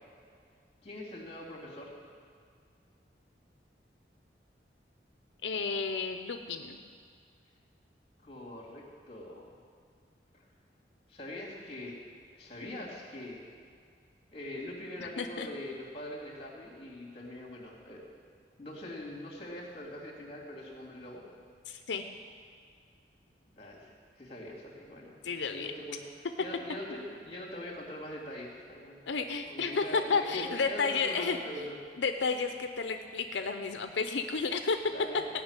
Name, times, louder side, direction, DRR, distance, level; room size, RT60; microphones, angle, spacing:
voice 1, 0.8-1.9 8.2-9.5 11.1-12.0 12.3-13.4 14.3-18.0 18.6-21.2 23.6-26.0 26.4-29.0 29.5-31.8 34.9-35.3, left 1 dB, 35° left, -3 dB, 2.9 m, -43 dB
voice 2, 5.4-6.8 15.0-15.5 21.7-22.0 25.2-25.7 26.9-27.0 29.1-31.4 32.0-34.8, left 4 dB, 90° left, 7 dB, 0.6 m, -32 dB
15.5 x 5.9 x 9.0 m, 2.1 s
head